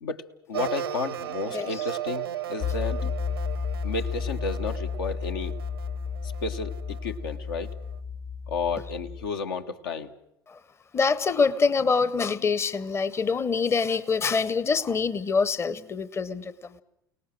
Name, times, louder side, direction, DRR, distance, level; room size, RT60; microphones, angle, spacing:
voice 1, 0.0-3.0 3.8-5.5 6.4-7.7 8.5-10.1, left 4 dB, 75° left, 1.2 m, -32 dB
sound 1, 0.5-8.0, right 11 dB, 80° right, 0.9 m, -37 dB
sound 2, 2.6-9.3, left 6 dB, 55° left, 2.5 m, -32 dB
voice 2, 10.9-16.5, left 5 dB, 20° left, 0.8 m, -25 dB
29.5 x 18.5 x 6.2 m
figure-of-eight pair, 70°, 12 cm